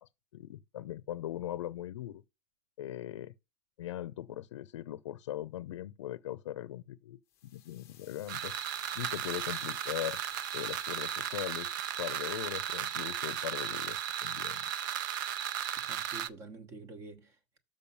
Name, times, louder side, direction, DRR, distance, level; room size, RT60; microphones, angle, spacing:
voice 1, 0.0-2.2 2.8-3.3 3.8-8.5 8.9-10.2 10.5-14.6, left 12 dB, 85° left, 0.6 m, -40 dB
sound 1, 7.3-12.3, left 11 dB, 20° left, 0.8 m, -55 dB
sound 2, 8.3-16.3, right 10 dB, 45° right, 0.6 m, -35 dB
voice 2, 15.8-17.6, right 3 dB, 20° right, 1.0 m, -48 dB
7.1 x 5.3 x 5.5 m
supercardioid pair, 180°, 15 cm